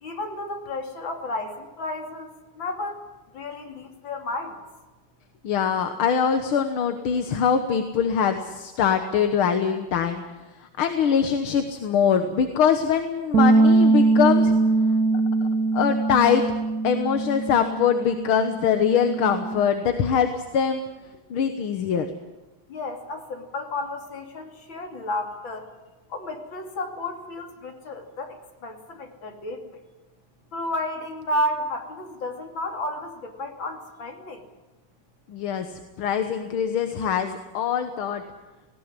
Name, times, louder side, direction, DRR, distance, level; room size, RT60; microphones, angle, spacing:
voice 1, 0.0-2.3 2.6-3.0 3.3-4.6 22.7-25.7 26.1-28.4 28.6-29.6 30.5-34.4, left 1 dB, 65° left, 3 dB, 3.5 m, -32 dB
voice 2, 5.4-10.2 10.8-14.5 15.7-16.4 16.8-20.8 21.3-22.1 35.3-38.2, left 7 dB, 80° left, 7 dB, 2.1 m, -23 dB
sound 1, 13.3-19.6, right 3 dB, 50° right, 1.8 m, -22 dB
19.0 x 18.0 x 9.9 m, 1.2 s
omnidirectional pair, 2.3 m